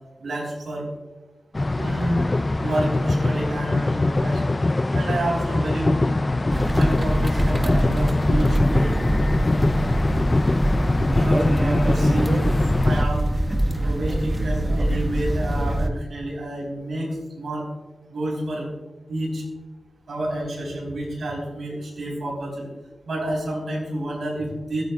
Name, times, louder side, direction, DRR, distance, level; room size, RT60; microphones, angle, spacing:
voice 1, 0.2-0.9 1.7-2.2 2.6-4.4 4.9-6.0 6.7-8.9 11.2-12.4 12.8-13.3 13.8-17.1 17.3-17.7 18.1-18.7 19.1-19.4 20.1-22.7 23.1-24.8, right 1 dB, 85° right, -2 dB, 3.9 m, -29 dB
sound 1, 1.5-13.1, left 2 dB, 35° left, 0.4 m, -22 dB
sound 2, 6.5-15.9, right 1 dB, 30° right, 1.3 m, -24 dB
23.5 x 9.3 x 2.4 m, 1.2 s
cardioid pair, 45°, 0 cm